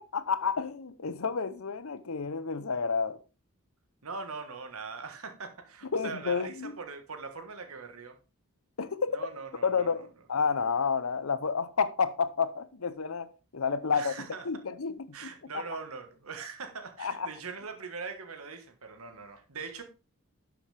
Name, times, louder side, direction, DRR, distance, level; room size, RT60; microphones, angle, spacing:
voice 1, 0.0-3.2 5.9-6.8 8.8-9.2 9.6-14.1 14.5-15.2 15.5-15.6 17.0-17.3, left 5 dB, 75° left, 0.7 m, -30 dB
voice 2, 4.0-8.2 9.1-10.0 13.9-14.5 15.1-19.8, right 4 dB, 80° right, 1.5 m, -41 dB
11.0 x 7.0 x 3.4 m
head